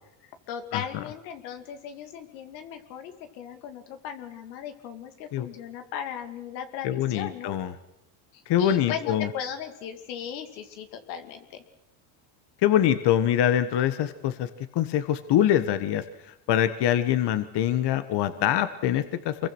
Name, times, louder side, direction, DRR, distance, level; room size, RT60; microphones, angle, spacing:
voice 1, 0.5-7.6 8.3-11.6, left 8 dB, 90° left, 7 dB, 2.6 m, -37 dB
voice 2, 6.8-7.7 8.5-9.3 12.6-14.5 14.7-16.1 16.5-19.5, left 11 dB, 55° left, 11 dB, 1.6 m, -24 dB
25.5 x 22.5 x 6.2 m, 0.84 s
supercardioid pair, 100°, 50 cm